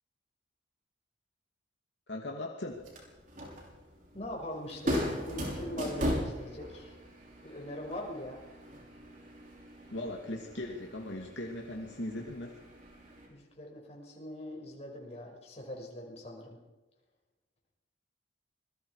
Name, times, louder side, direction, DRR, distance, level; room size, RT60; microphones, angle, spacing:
voice 1, 2.1-2.9 9.9-12.6, left 1 dB, 70° left, 0 dB, 2.5 m, -39 dB
sound 1, 2.7-13.3, equal, 45° right, 6.3 m, -39 dB
voice 2, 4.1-7.0 7.4-8.4 13.3-16.6, left 1 dB, 35° left, 0 dB, 5.9 m, -42 dB
27.5 x 22.0 x 5.0 m, 1.1 s
head